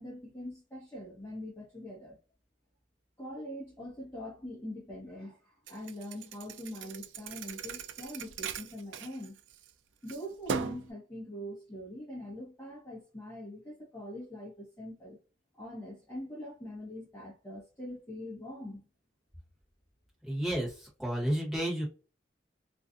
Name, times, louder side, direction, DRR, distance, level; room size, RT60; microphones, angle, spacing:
voice 1, 0.0-2.2 3.2-9.4 10.0-15.2 15.6-18.8, left 1 dB, 15° left, 0.9 m, -43 dB
Thump thud, 5.7-9.7 10.1-10.9, right 6 dB, 85° right, 0.4 m, -39 dB
voice 2, 20.2-21.8, right 1 dB, ahead, 1.2 m, -31 dB
2.6 x 2.3 x 2.4 m
head